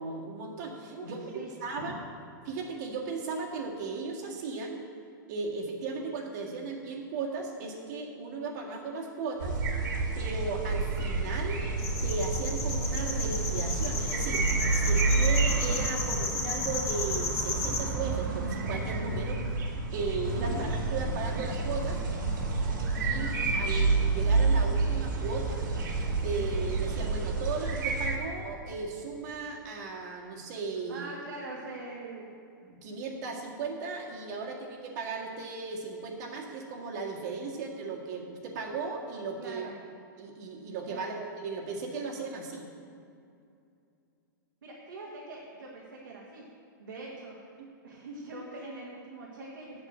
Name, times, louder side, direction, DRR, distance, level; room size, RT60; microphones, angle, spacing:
voice 1, 0.0-1.2 1.6-2.0 2.4-4.8 5.3-9.6 10.2-11.6 12.0-14.5 14.7-19.4 19.9-22.0 23.0-25.7 26.2-31.1 32.6-39.7 40.2-42.7 47.6-47.7, right 4 dB, 55° right, -2 dB, 1.9 m, -36 dB
voice 2, 0.9-1.5 1.8-1.9 20.4-20.6 30.9-32.3 39.4-39.7 40.9-41.2 44.6-46.4 46.8-47.4 47.8-49.9, right 2 dB, 90° right, -5 dB, 2.1 m, -43 dB
sound 1, 9.4-28.2, right 3 dB, 70° right, 2.3 m, -29 dB
sound 2, 11.8-17.8, left 3 dB, 25° left, 2.1 m, -33 dB
8.2 x 7.4 x 8.0 m, 2.5 s
hypercardioid pair, 130°, 11 cm